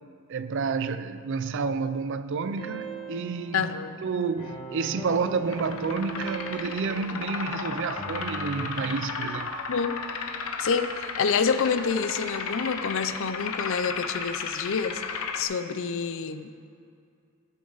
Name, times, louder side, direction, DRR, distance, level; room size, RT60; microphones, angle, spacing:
voice 1, 0.3-3.8 4.0-9.5, right 4 dB, 60° right, 0.5 m, -30 dB
sound 1, 2.6-8.7, right 3 dB, 25° left, 1.8 m, -40 dB
voice 2, 3.5-3.9 9.7-10.0 10.6-16.5, left 5 dB, 65° left, 0.5 m, -28 dB
sound 2, 5.5-15.4, left 5 dB, 90° left, 0.8 m, -34 dB
14.0 x 8.3 x 4.0 m
head